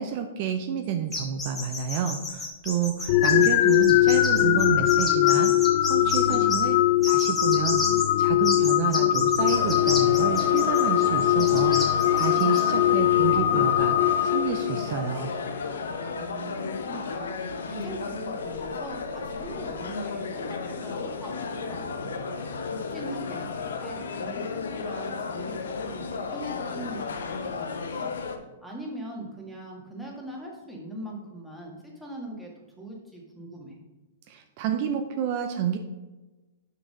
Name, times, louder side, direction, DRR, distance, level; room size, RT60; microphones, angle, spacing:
voice 1, 0.0-6.8 7.0-7.8 8.2-15.3 34.3-35.8, right 8 dB, 45° right, 6 dB, 0.5 m, -29 dB
sound 1, 1.1-6.6 7.0-8.0 8.4-12.6, left 2 dB, 15° left, 1.8 m, -32 dB
sound 2, 3.1-15.1, left 13 dB, 45° left, 0.4 m, -21 dB
sound 3, 9.4-28.4, left 5 dB, 85° left, 0.8 m, -34 dB
voice 2, 16.1-22.2 22.7-28.1 28.3-32.5 32.8-33.8, right 1 dB, ahead, -2 dB, 1.6 m, -41 dB
6.1 x 4.6 x 5.2 m, 1.2 s
hypercardioid pair, 145°, 0 cm